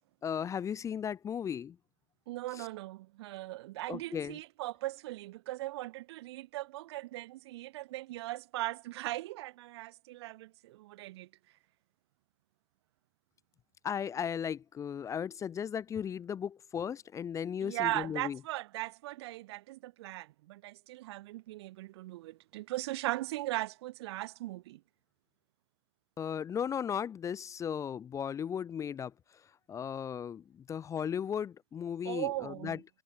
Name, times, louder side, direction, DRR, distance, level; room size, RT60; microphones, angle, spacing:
voice 1, 0.2-1.8 2.5-2.7 3.9-4.4 13.8-18.4 26.2-32.8, left 8 dB, 20° left, 0.4 m, -36 dB
voice 2, 2.3-11.3 17.6-24.8 32.0-32.8, right 17 dB, 65° right, 0.5 m, -39 dB
hypercardioid pair, 85°, 15 cm